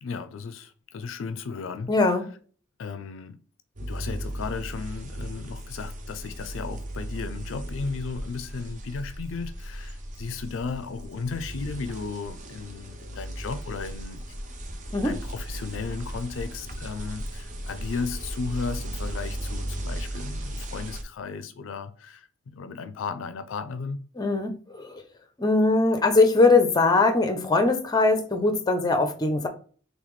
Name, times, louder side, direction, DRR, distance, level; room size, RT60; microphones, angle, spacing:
voice 1, 0.0-1.9 2.8-3.4 3.8-14.2 15.0-24.0, left 4 dB, 65° left, 0.4 m, -35 dB
voice 2, 1.9-2.3 14.9-15.1 24.2-25.0 25.4-29.5, left 3 dB, 20° left, 0.6 m, -21 dB
sound 1, 3.8-21.0, right 1 dB, 40° right, 0.6 m, -36 dB
4.0 x 3.3 x 3.1 m
head